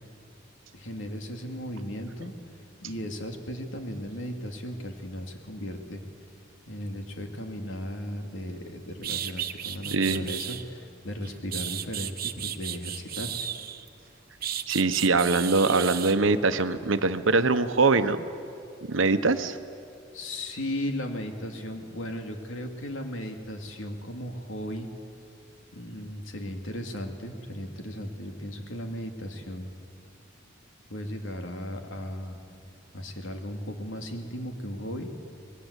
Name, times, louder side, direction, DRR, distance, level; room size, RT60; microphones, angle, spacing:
voice 1, 0.7-2.4 2.8-6.0 6.7-13.3 20.1-24.9 25.7-29.7 30.9-32.4 32.9-35.1, equal, 85° left, 4 dB, 2.6 m, -36 dB
sound 1, 8.6-8.7 9.0-10.6 11.2-13.9 14.4-16.2, right 10 dB, 50° right, 1.1 m, -34 dB
voice 2, 9.9-10.3 14.7-18.3 18.9-19.6, right 3 dB, 85° right, 11 dB, 1.1 m, -23 dB
26.0 x 21.0 x 8.3 m, 2.5 s
head